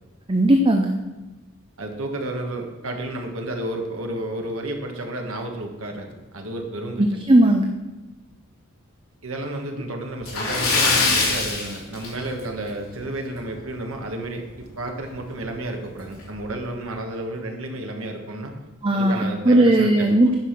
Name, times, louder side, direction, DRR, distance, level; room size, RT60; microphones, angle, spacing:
voice 1, 0.3-0.9 7.0-7.6 18.8-20.3, right 1 dB, 25° right, 4 dB, 0.5 m, -17 dB
voice 2, 1.8-7.2 9.2-18.5 18.9-20.1, right 1 dB, 70° right, 3 dB, 1.4 m, -31 dB
Splash splatter, 10.2-12.6 12.9-13.1 13.5-13.6 15.0-15.1 15.5-15.6 16.2-16.4, left 3 dB, 75° left, 3.6 m, -22 dB
9.7 x 5.6 x 5.8 m, 1.1 s
head